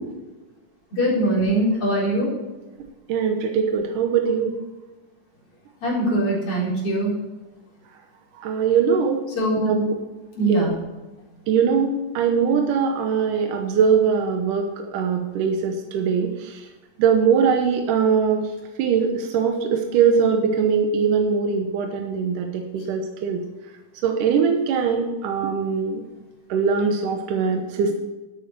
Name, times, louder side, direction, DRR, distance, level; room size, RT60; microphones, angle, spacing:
voice 1, 0.9-2.3 5.8-7.1 9.3-9.7 10.3-10.7, right 1 dB, 45° left, -5 dB, 5.1 m, -22 dB
voice 2, 3.1-4.5 8.4-9.3 9.7-10.0 10.5-10.7 11.5-16.6 17.0-18.5 18.8-23.4 24.0-26.0 26.5-28.0, right 6 dB, 85° right, 3 dB, 2.6 m, -21 dB
12.5 x 8.4 x 4.6 m, 1.1 s
omnidirectional pair, 3.7 m